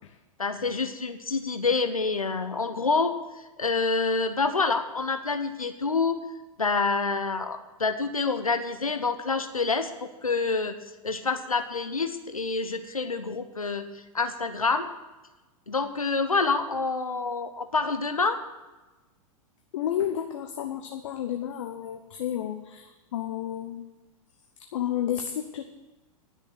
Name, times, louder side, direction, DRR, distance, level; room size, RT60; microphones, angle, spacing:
voice 1, 0.4-3.2 3.6-6.2 6.6-10.8 11.0-13.9 14.1-14.9 15.7-18.4, left 4 dB, 90° left, 9 dB, 1.0 m, -27 dB
voice 2, 19.7-23.8 24.7-25.6, left 10 dB, 60° left, 5 dB, 1.0 m, -31 dB
10.5 x 6.5 x 9.1 m, 1.1 s
figure-of-eight pair, 100°, 18 cm